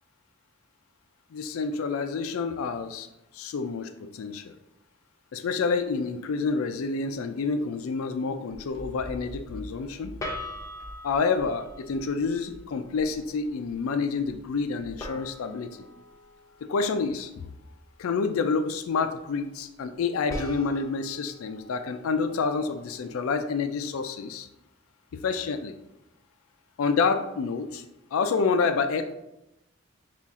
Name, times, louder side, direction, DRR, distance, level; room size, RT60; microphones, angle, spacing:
voice 1, 1.3-3.1 3.3-4.5 5.3-10.1 11.0-15.7 16.6-17.3 18.0-24.5 25.1-25.7 26.8-27.8 28.1-29.1, left 4 dB, 85° left, 8 dB, 0.4 m, -28 dB
sound 1, 5.8-5.9 10.2-12.6 15.0-17.5 20.3-23.4, left 1 dB, 15° left, 0.7 m, -42 dB
sound 2, 8.5-15.3, equal, 70° right, 1.3 m, -45 dB
5.6 x 2.4 x 3.5 m, 0.88 s
head